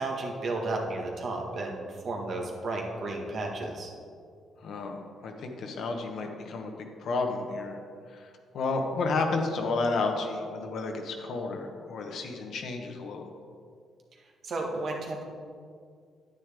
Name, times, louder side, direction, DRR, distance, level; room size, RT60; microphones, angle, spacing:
voice 1, 0.0-4.0 14.4-15.2, right 2 dB, 55° right, 1 dB, 1.5 m, -33 dB
voice 2, 4.6-7.8 8.1-13.3, left 3 dB, 65° left, 3 dB, 1.1 m, -32 dB
9.4 x 9.3 x 3.5 m, 2.2 s
cardioid pair, 90°, 0 cm